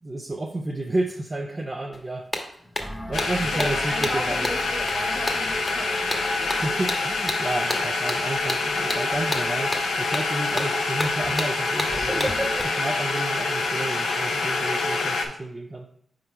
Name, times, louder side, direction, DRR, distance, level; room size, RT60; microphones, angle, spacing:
voice 1, 0.0-2.3 3.1-4.5 6.6-12.3 12.8-15.8, right 2 dB, 35° right, 1 dB, 0.6 m, -31 dB
sound 1, 1.9-2.0 2.3-12.6, left 1 dB, 30° left, 1.1 m, -32 dB
sound 2, 2.8-12.3, left 1 dB, 15° left, 0.7 m, -42 dB
sound 3, 3.1-15.3, left 3 dB, 85° left, 0.8 m, -26 dB
voice 2, 3.5-7.2 11.9-12.8, right 1 dB, 20° right, 3 dB, 1.3 m, -35 dB
4.6 x 3.8 x 5.4 m, 0.68 s
cardioid pair, 50°, 0 cm